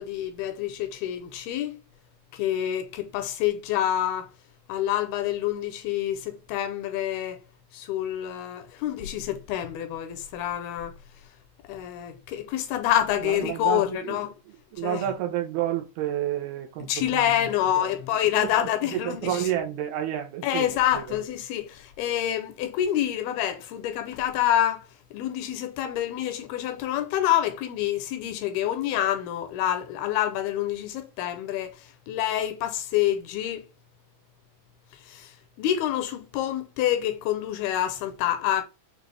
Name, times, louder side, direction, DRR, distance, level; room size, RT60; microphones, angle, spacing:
voice 1, 0.0-1.7 2.3-4.3 4.7-7.4 7.7-10.9 11.7-14.3 14.8-15.1 16.8-19.5 20.4-24.8 25.1-33.7 35.1-38.6, left 11 dB, 80° left, 2.4 m, -27 dB
voice 2, 13.2-14.2 14.7-16.9 17.2-17.9 18.4-21.2, right 11 dB, 80° right, 2.6 m, -30 dB
6.6 x 2.4 x 3.2 m
omnidirectional pair, 4.6 m